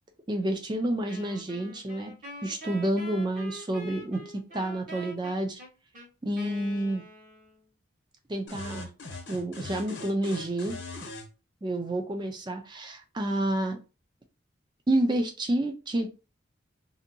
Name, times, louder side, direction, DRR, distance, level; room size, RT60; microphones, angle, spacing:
voice 1, 0.3-2.1 2.4-5.6 6.2-7.0 8.3-8.9 9.3-10.8 11.6-13.8 14.9-16.1, right 1 dB, 25° right, 0.5 m, -29 dB
Wind instrument woodwind instrument, 1.1-7.6, equal, 40° right, 1.1 m, -45 dB
sound 1, 8.5-11.3, left 3 dB, 75° left, 0.8 m, -40 dB
2.7 x 2.6 x 2.6 m
head